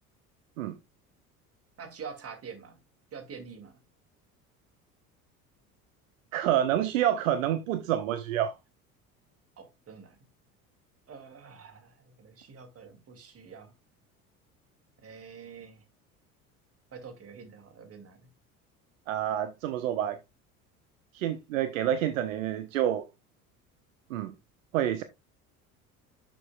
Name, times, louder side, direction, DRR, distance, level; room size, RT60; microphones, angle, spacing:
voice 1, 1.8-2.8 3.1-3.7 9.6-10.2 11.1-13.7 15.0-15.8 16.9-18.2, right 6 dB, 30° right, 2.5 m, -46 dB
voice 2, 6.3-8.5 19.1-20.2 21.1-23.1 24.1-24.3 24.7-25.0, right 11 dB, 60° right, 0.9 m, -28 dB
11.5 x 6.8 x 2.3 m
figure-of-eight pair, 65°, 44 cm